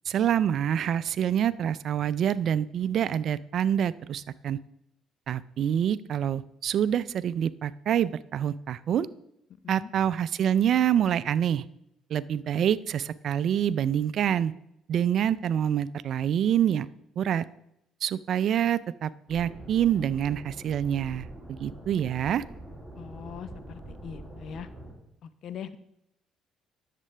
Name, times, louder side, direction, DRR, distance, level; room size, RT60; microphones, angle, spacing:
voice 1, 0.1-4.6 5.3-9.1 9.7-11.6 12.1-14.5 14.9-16.9 17.2-17.4 18.0-22.4, right 9 dB, 60° right, 18 dB, 0.4 m, -26 dB
sound 1, 19.3-24.9, right 1 dB, ahead, 2.8 m, -44 dB
voice 2, 23.0-24.7 25.2-25.8, left 8 dB, 60° left, 13 dB, 0.7 m, -41 dB
11.0 x 7.5 x 3.3 m, 0.79 s
supercardioid pair, 70°, 0 cm